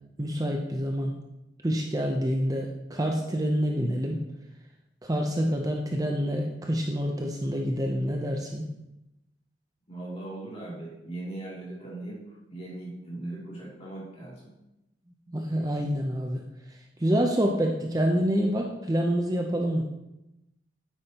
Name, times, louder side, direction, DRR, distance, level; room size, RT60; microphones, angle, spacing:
voice 1, 0.2-1.2 1.6-4.2 5.0-8.6 15.3-16.4 16.7-19.9, equal, 20° right, 1 dB, 0.6 m, -27 dB
voice 2, 9.9-12.2 12.5-14.5, right 2 dB, 35° left, -6 dB, 2.7 m, -39 dB
8.9 x 8.1 x 2.9 m, 0.92 s
head